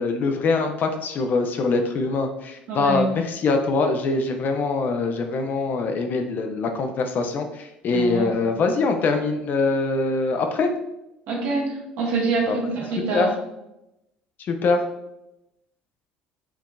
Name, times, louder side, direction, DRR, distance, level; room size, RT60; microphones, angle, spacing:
voice 1, 0.0-10.7 12.5-12.6 13.1-13.3 14.4-14.8, left 3 dB, 45° left, 5 dB, 0.5 m, -23 dB
voice 2, 2.7-3.1 7.9-8.3 11.3-13.3, right 3 dB, 60° right, -2 dB, 1.1 m, -25 dB
4.5 x 2.8 x 2.2 m, 0.89 s
figure-of-eight pair, 60°, 4 cm